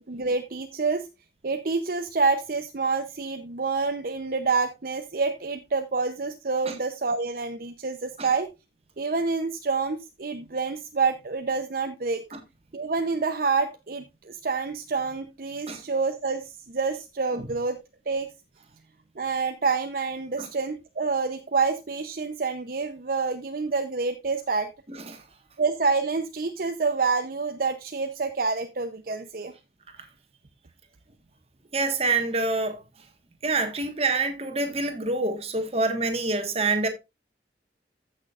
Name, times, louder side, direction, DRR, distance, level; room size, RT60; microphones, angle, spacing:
voice 1, 0.1-1.1 1.4-8.5 9.0-12.2 12.7-17.8 18.1-18.3 19.2-24.7 25.6-29.5, right 4 dB, 55° right, 0.7 m, -27 dB
voice 2, 31.7-32.8 33.4-36.9, right 3 dB, 35° right, 1.5 m, -26 dB
15.0 x 6.2 x 2.4 m
head